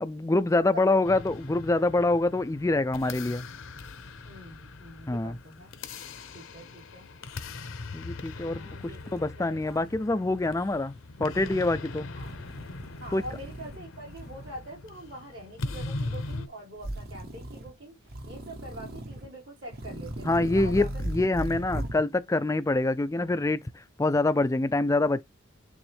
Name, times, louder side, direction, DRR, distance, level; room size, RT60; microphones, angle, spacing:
voice 1, 0.0-3.4 5.1-5.4 7.9-12.1 13.1-13.2 20.2-25.2, left 2 dB, 15° left, 0.3 m, -26 dB
sound 1, 1.0-16.5, left 3 dB, 60° left, 0.7 m, -40 dB
voice 2, 4.2-5.7 6.3-7.1 8.3-9.9 12.1-12.3 13.0-17.9 18.2-21.0 21.7-21.9, right 1 dB, 85° right, 5.3 m, -44 dB
sound 2, 8.8-10.0 10.3-10.8 11.3-11.8 12.2-13.8 14.1-14.6 15.7-16.4 16.8-17.7 18.1-19.3 19.7-22.0, right 1 dB, 45° right, 0.9 m, -38 dB
8.7 x 3.6 x 3.4 m
head